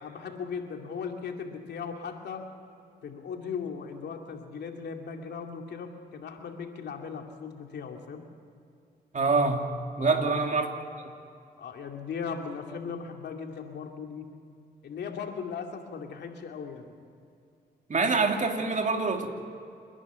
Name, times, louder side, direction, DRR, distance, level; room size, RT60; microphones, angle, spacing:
voice 1, 0.0-2.5 3.0-8.2 10.0-10.5 11.6-14.3 14.8-16.9, left 6 dB, 80° left, 3 dB, 2.5 m, -38 dB
voice 2, 9.1-9.7 10.0-10.7 17.9-19.3, right 4 dB, 45° right, 3 dB, 2.7 m, -25 dB
28.0 x 11.0 x 9.3 m, 2.5 s
cardioid pair, 65°, 17 cm